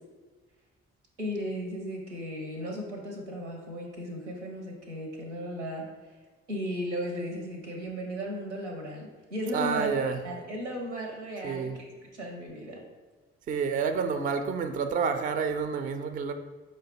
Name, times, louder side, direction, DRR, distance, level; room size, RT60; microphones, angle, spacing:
voice 1, 1.2-5.8 6.5-12.8, equal, 85° right, 0.6 m, -36 dB
voice 2, 9.5-10.2 11.4-11.8 13.5-16.3, right 5 dB, 25° right, 0.3 m, -29 dB
4.8 x 2.1 x 4.1 m
figure-of-eight pair, 40°, 34 cm